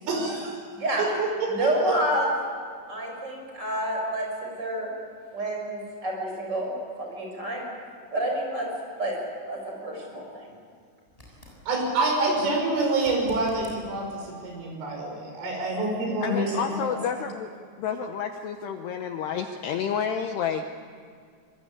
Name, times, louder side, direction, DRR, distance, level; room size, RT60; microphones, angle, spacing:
voice 1, 0.0-0.6 1.0-1.9 11.7-17.0, right 2 dB, 75° right, 0 dB, 8.3 m, -27 dB
voice 2, 0.7-1.1 1.5-2.3 2.9-4.9 5.3-7.7 8.1-8.7 9.0-9.2 9.5-10.5, right 1 dB, 20° right, 0 dB, 6.9 m, -29 dB
sound 1, 11.1-11.6 13.0-13.8 16.8-16.9, equal, 5° left, 6.8 m, -47 dB
voice 3, 16.2-17.5 17.8-20.7, left 7 dB, 75° left, 6 dB, 2.5 m, -30 dB
25.5 x 21.5 x 8.9 m, 2.2 s
omnidirectional pair, 5.8 m